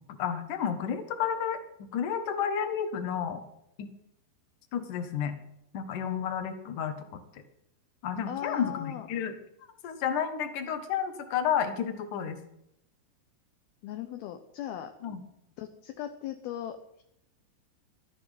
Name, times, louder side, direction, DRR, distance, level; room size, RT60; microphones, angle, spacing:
voice 1, 0.2-1.6 1.9-3.4 3.8-3.9 4.7-5.4 5.7-7.0 8.0-9.3 9.8-12.4 15.0-15.2, left 8 dB, 60° left, 8 dB, 2.4 m, -31 dB
voice 2, 8.3-9.1 13.8-14.9 15.6-17.0, left 10 dB, 75° left, 7 dB, 2.4 m, -38 dB
12.5 x 10.5 x 9.2 m, 0.79 s
omnidirectional pair, 5.2 m